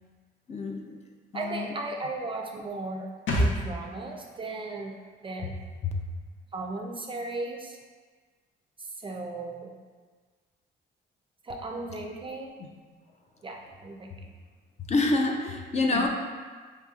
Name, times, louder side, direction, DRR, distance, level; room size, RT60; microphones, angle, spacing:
voice 1, 0.5-1.0 1.3-1.7 5.8-5.9 14.9-16.1, left 2 dB, 35° left, 2 dB, 0.4 m, -27 dB
voice 2, 1.3-4.9 5.2-5.5 6.5-7.8 8.8-9.7 11.4-12.5 13.4-14.1 15.9-16.1, right 2 dB, 25° right, 1 dB, 0.4 m, -36 dB
sound 1, 3.3-6.8 7.0-7.1, equal, 75° left, 0.7 m, -33 dB
4.8 x 2.8 x 2.3 m, 1.5 s
cardioid pair, 90°, 20 cm